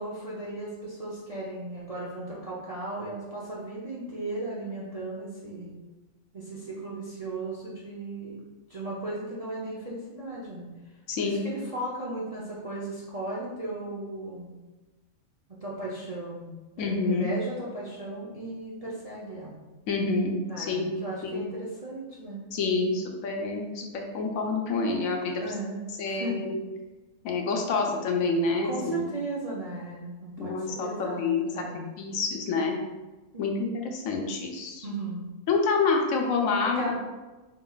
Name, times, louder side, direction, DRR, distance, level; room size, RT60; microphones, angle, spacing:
voice 1, 0.0-5.7 6.3-8.4 8.7-10.7 11.2-14.5 15.5-16.5 16.8-19.6 20.5-22.4 25.4-26.4 28.6-31.9 33.3-33.7 34.8-35.3 36.6-36.9, right 2 dB, 40° right, -6 dB, 0.5 m, -36 dB
voice 2, 11.1-11.4 16.8-17.3 19.9-20.9 21.2-21.4 22.5-25.4 26.0-26.6 27.2-29.1 30.4-31.6 32.0-32.8 33.4-34.8 35.5-36.8, left 4 dB, 75° left, 1 dB, 1.0 m, -27 dB
4.6 x 3.8 x 2.3 m, 1.2 s
omnidirectional pair, 1.5 m